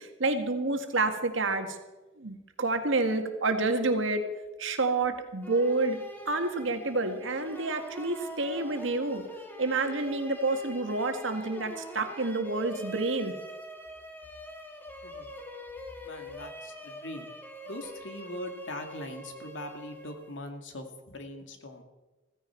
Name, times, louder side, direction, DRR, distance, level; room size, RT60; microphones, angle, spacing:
voice 1, 0.0-1.8 2.2-4.3 4.6-9.2 9.6-13.3, right 3 dB, 80° right, 6 dB, 1.8 m, -29 dB
sound 1, 5.4-20.5, equal, 10° left, 1.8 m, -44 dB
voice 2, 16.0-17.3 17.7-21.8, left 1 dB, 75° left, 5 dB, 2.1 m, -41 dB
16.0 x 15.5 x 4.5 m, 1.1 s
head